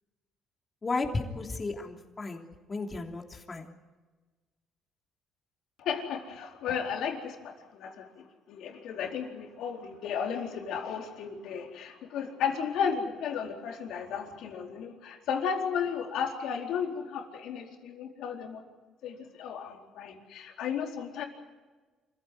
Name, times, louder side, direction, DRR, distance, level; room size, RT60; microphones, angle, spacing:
voice 1, 0.8-3.7, left 3 dB, 30° left, 2 dB, 3.3 m, -34 dB
voice 2, 5.8-18.6 19.0-21.3, left 7 dB, 75° left, 2 dB, 4.2 m, -34 dB
27.5 x 16.0 x 9.3 m, 1.3 s
cardioid pair, 100°, 0 cm